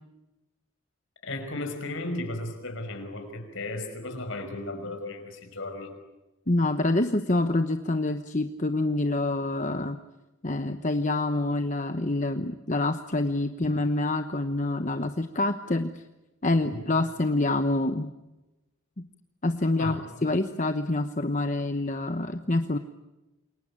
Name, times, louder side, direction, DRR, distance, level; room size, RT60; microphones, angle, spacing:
voice 1, 1.2-5.9 13.6-13.9 16.6-16.8 19.8-20.1, left 2 dB, 60° left, 6 dB, 5.5 m, -35 dB
voice 2, 6.5-10.0 10.4-16.0 16.4-18.1 19.0-19.1 19.4-22.8, left 2 dB, 35° left, 8 dB, 1.0 m, -26 dB
28.5 x 23.5 x 8.8 m, 1.0 s
head